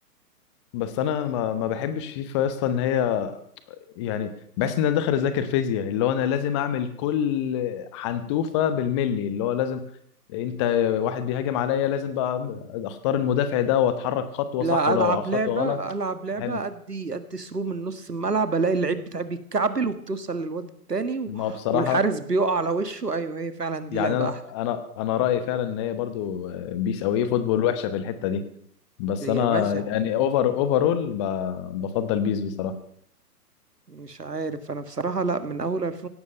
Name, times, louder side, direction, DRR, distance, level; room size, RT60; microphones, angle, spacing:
voice 1, 0.7-3.4 4.0-9.8 10.3-15.8 16.4-16.6 21.3-22.0 23.9-28.4 29.0-32.8, left 9 dB, 20° left, 11 dB, 0.9 m, -25 dB
voice 2, 14.6-21.5 21.7-24.4 29.2-29.9 33.9-36.1, right 4 dB, 85° right, 11 dB, 1.9 m, -27 dB
17.0 x 12.0 x 6.5 m, 0.66 s
figure-of-eight pair, 130°, 47 cm